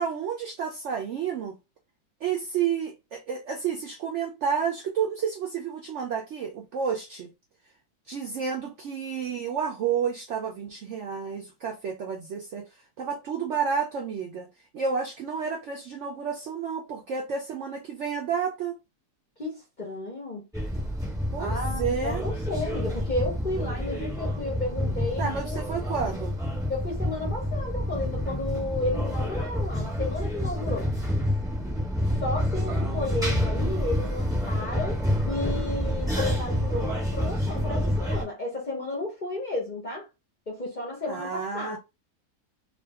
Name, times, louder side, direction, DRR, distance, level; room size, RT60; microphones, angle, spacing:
voice 1, 0.0-1.6 2.2-7.3 8.1-14.5 14.7-18.8 21.3-22.2 25.2-26.4 32.7-33.9 41.1-41.8, right 6 dB, 75° right, 0.6 m, -31 dB
voice 2, 19.4-20.4 21.4-26.1 26.7-30.9 32.2-40.1 40.5-41.8, left 2 dB, 45° left, 0.6 m, -33 dB
sound 1, 20.5-38.2, equal, ahead, 1.1 m, -28 dB
2.5 x 2.5 x 3.3 m
omnidirectional pair, 1.7 m